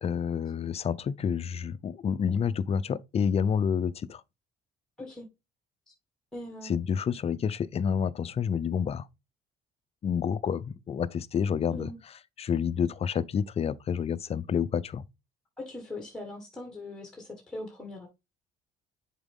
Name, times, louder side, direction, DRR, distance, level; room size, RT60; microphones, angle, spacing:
voice 1, 0.0-4.2 6.6-9.1 10.0-11.9 12.4-15.0, left 7 dB, 35° left, 0.5 m, -29 dB
voice 2, 6.3-6.8 11.7-12.0 15.6-18.1, left 1 dB, 5° left, 1.7 m, -41 dB
7.1 x 4.5 x 3.5 m
cardioid pair, 110°, 17 cm